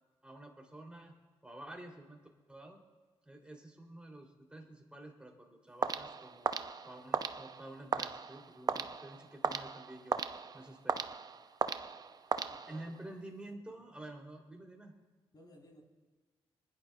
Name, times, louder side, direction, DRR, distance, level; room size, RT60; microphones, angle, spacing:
voice 1, 0.2-1.1 1.4-2.2 2.5-2.8 3.2-10.2 10.5-11.0 12.7-14.9, right 1 dB, 10° right, 0 dB, 3.1 m, -50 dB
sound 1, 5.8-13.1, right 5 dB, 35° right, 0.6 m, -37 dB
voice 2, 12.5-13.0 13.5-13.8 15.3-15.8, left 1 dB, 40° left, -1 dB, 4.0 m, -59 dB
25.5 x 10.5 x 2.4 m, 1.3 s
cardioid pair, 70°, 11 cm